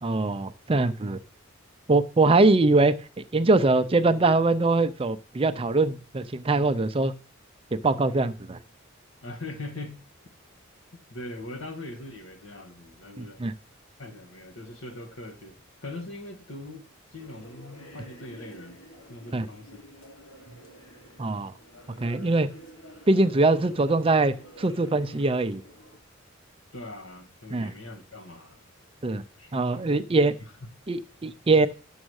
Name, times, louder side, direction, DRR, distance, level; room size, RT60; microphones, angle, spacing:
voice 1, 0.0-1.2 1.9-7.1 7.7-8.6 13.2-13.5 19.3-19.5 21.2-21.5 22.0-22.5 23.1-25.6 27.5-27.7 29.0-29.2 29.5-30.3 30.9-31.7, right 2 dB, 25° right, 0.5 m, -22 dB
voice 2, 9.2-10.0 11.1-13.4 14.0-15.6 15.8-16.8 17.1-18.8 19.1-19.7 26.7-28.6 29.2-29.9 30.6-30.7, left 2 dB, 75° left, 1.7 m, -41 dB
sound 1, 17.2-26.0, right 1 dB, 90° left, 1.8 m, -49 dB
7.2 x 6.4 x 6.4 m
head